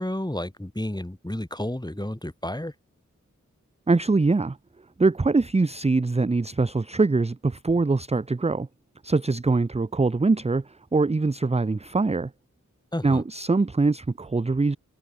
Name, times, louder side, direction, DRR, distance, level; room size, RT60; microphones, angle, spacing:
voice 1, 0.0-2.7 12.9-13.2, left 1 dB, 15° left, 4.7 m, -31 dB
voice 2, 3.9-4.6 5.0-8.7 9.0-12.3 13.0-14.8, right 3 dB, 20° right, 0.5 m, -23 dB
open air
wide cardioid pair, 65°, 30 cm